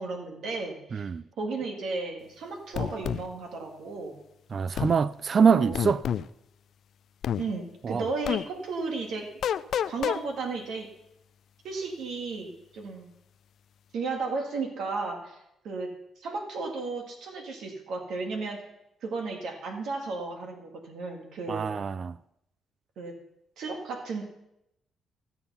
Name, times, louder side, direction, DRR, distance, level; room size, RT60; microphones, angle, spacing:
voice 1, 0.0-1.1 1.4-4.2 5.4-5.8 7.4-9.3 9.9-10.9 11.6-13.1 13.9-18.6 19.0-21.7 23.0-23.2 23.6-24.2, right 3 dB, 75° right, 2.1 m, -34 dB
voice 2, 0.9-1.2 4.5-6.0 7.8-8.1 21.5-22.2, right 6 dB, 45° right, 0.3 m, -24 dB
sound 1, 2.8-3.2 4.8-5.0 5.7-6.3 7.2-7.4 8.3-8.4 9.4-10.2, left 9 dB, 65° left, 0.4 m, -28 dB
13.5 x 7.1 x 5.6 m
cardioid pair, 90°, 0 cm